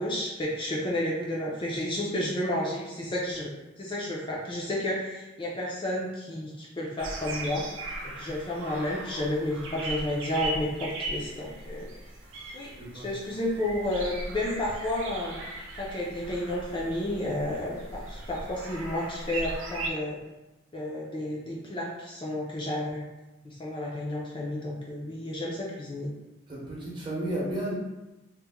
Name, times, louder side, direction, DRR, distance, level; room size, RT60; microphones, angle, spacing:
voice 1, 0.0-3.5 3.8-7.6 8.2-11.9 12.5-15.4 15.8-20.2 20.7-23.0 23.4-26.1, left 1 dB, 25° left, -4 dB, 0.4 m, -31 dB
sound 1, 7.0-19.9, right 2 dB, 75° right, 0.5 m, -38 dB
voice 2, 26.5-27.8, right 1 dB, 25° right, -5 dB, 0.8 m, -32 dB
2.9 x 2.1 x 3.4 m, 1.0 s
head